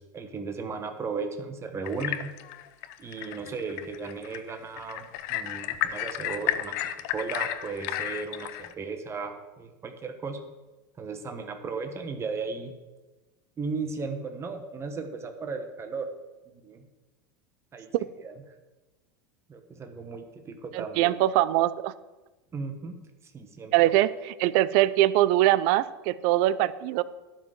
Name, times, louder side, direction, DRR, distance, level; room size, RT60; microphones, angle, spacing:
voice 1, 0.0-2.3 3.0-10.4 11.0-12.7 13.6-16.1 16.5-16.8 17.7-17.9 18.2-18.3 19.5-21.1 22.5-23.0 23.3-23.9, right 4 dB, 25° right, 6 dB, 1.3 m, -36 dB
sound 1, 1.9-8.7, left 13 dB, 65° left, 0.7 m, -33 dB
voice 2, 20.7-21.9 23.7-24.1 24.4-27.0, right 15 dB, 60° right, 17 dB, 0.6 m, -22 dB
12.0 x 5.3 x 7.4 m, 1.2 s
hypercardioid pair, 100°, 10 cm